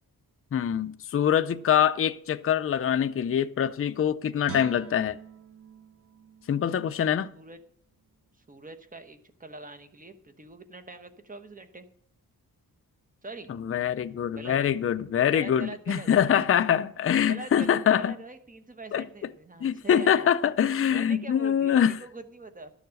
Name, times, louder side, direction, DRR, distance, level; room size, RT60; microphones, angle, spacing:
voice 1, 0.5-5.2 6.5-7.3 13.5-18.2 18.9-19.1 19.6-21.9, left 9 dB, 40° left, 0.5 m, -24 dB
Guitar, 4.4-7.6 8.0-8.2, right 8 dB, 40° right, 0.6 m, -46 dB
voice 2, 8.4-11.9 13.2-13.5 14.3-14.6 15.3-16.1 17.3-20.3 20.9-22.7, right 2 dB, 20° right, 1.1 m, -43 dB
12.0 x 7.2 x 6.4 m
wide cardioid pair, 165°, 36 cm